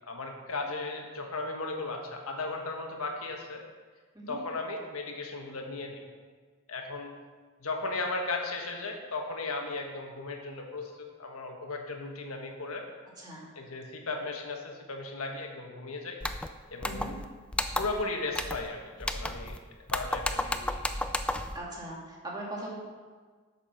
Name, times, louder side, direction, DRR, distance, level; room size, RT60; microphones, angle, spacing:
voice 1, 0.1-3.6 4.3-6.0 6.7-7.1 7.6-12.9 13.5-16.2 16.7-17.0 17.8-19.6 19.9-20.8, left 3 dB, 85° left, 3 dB, 1.3 m, -36 dB
sound 1, 16.2-16.5 16.8-17.3 17.5-18.0 18.3-18.7 19.0-19.6 19.9-21.6, left 1 dB, 5° left, 0.3 m, -32 dB
voice 2, 16.8-17.1 21.5-22.8, right 1 dB, 20° right, -3 dB, 2.0 m, -40 dB
8.1 x 7.0 x 5.7 m, 1.5 s
head